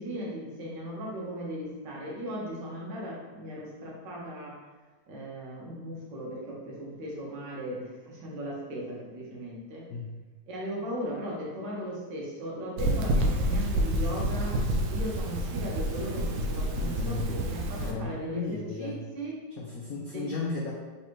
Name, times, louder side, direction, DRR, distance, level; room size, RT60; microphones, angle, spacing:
voice 1, 0.0-4.6 5.1-9.8 10.5-14.6 14.9-19.4 20.1-20.3, equal, 70° right, -4 dB, 1.6 m, -37 dB
sound 1, 12.8-17.9, right 1 dB, 85° right, 1.4 m, -28 dB
voice 2, 16.7-17.4 17.8-19.0 19.6-20.7, left 3 dB, 85° left, -2 dB, 0.7 m, -35 dB
4.0 x 3.2 x 3.0 m, 1.3 s
omnidirectional pair, 2.1 m